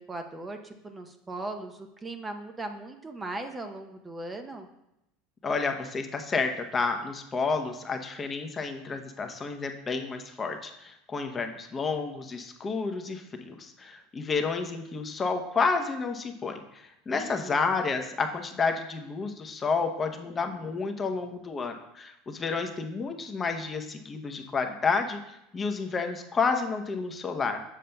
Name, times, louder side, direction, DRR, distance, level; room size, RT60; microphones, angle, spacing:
voice 1, 0.0-4.7 17.1-17.6, right 2 dB, 20° right, 5 dB, 0.7 m, -38 dB
voice 2, 5.4-27.6, left 4 dB, 25° left, 5 dB, 0.8 m, -30 dB
7.4 x 6.9 x 2.3 m, 0.84 s
hypercardioid pair, 90°, 0 cm